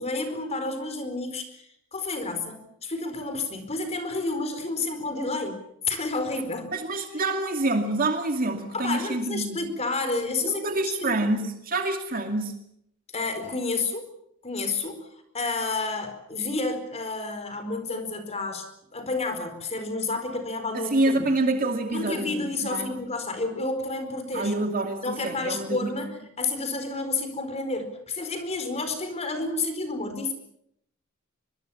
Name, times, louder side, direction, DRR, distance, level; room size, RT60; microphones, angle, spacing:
voice 1, 0.0-5.6 5.9-6.7 8.7-11.2 13.1-14.1 14.4-15.1 15.3-21.3 21.9-24.5 25.0-30.3, left 3 dB, 30° left, 8 dB, 4.5 m, -30 dB
voice 2, 6.7-9.6 10.4-12.5 20.7-23.0 24.3-25.9, right 2 dB, 45° right, 5 dB, 2.4 m, -27 dB
24.0 x 23.5 x 7.2 m, 0.73 s
head